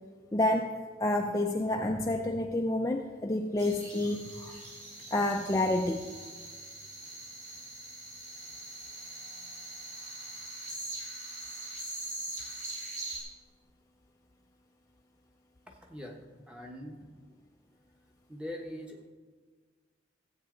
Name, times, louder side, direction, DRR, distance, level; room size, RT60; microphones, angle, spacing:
voice 1, 0.3-4.6 5.1-6.0, left 1 dB, 15° left, 2 dB, 0.4 m, -29 dB
sound 1, 3.6-13.2, right 1 dB, 40° right, 3.1 m, -42 dB
voice 2, 15.7-17.1 18.3-19.1, left 1 dB, 5° right, 1 dB, 1.1 m, -43 dB
15.5 x 8.1 x 3.8 m, 1.5 s
head